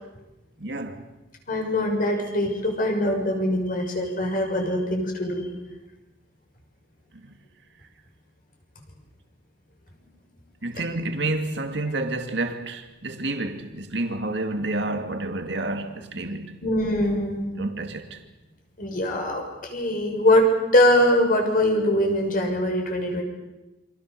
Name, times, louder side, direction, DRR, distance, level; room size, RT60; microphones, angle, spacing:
voice 1, 0.6-1.0 7.1-7.4 10.6-16.6 17.6-18.2, right 2 dB, 65° right, 2.5 m, -29 dB
voice 2, 1.5-5.5 16.6-17.5 18.8-20.5 20.7-23.2, left 1 dB, 50° left, 6.6 m, -22 dB
28.5 x 26.0 x 6.9 m
head